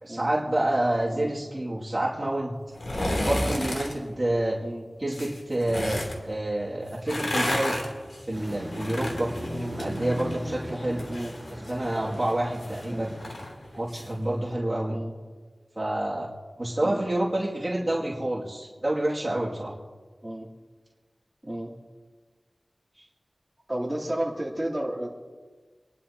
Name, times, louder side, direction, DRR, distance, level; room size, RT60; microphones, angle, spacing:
voice 1, 0.0-2.6 3.2-4.6 5.0-7.8 8.3-9.3 9.7-11.1 11.7-13.1 13.7-15.0 15.8-16.3 16.6-19.8, right 1 dB, 35° right, -6 dB, 2.3 m, -28 dB
sound 1, 2.7-3.9 5.1-6.2 6.9-10.4 10.7-14.1 14.4-14.5, left 1 dB, 70° left, 3.0 m, -32 dB
sound 2, 8.3-13.5, equal, 40° left, 5.7 m, -37 dB
voice 2, 23.7-25.1, right 1 dB, 10° right, -5 dB, 3.2 m, -32 dB
28.0 x 11.5 x 2.9 m, 1.4 s
wide cardioid pair, 60°, 0 cm